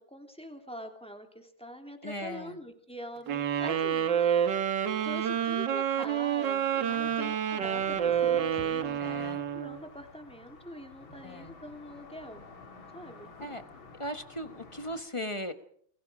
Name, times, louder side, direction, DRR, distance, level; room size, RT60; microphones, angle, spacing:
voice 1, 0.0-4.4 5.0-12.5 12.9-13.3, equal, 5° left, 4 dB, 2.9 m, -44 dB
voice 2, 2.0-2.6 6.9-7.2 9.0-9.4 11.2-11.5 13.4-13.6 14.0-15.5, equal, 20° left, 9 dB, 1.1 m, -38 dB
sound 1, 3.3-9.8, right 9 dB, 70° right, 1.9 m, -28 dB
sound 2, 7.6-15.0, left 4 dB, 85° left, 3.4 m, -50 dB
29.0 x 22.0 x 5.1 m, 0.64 s
omnidirectional pair, 2.1 m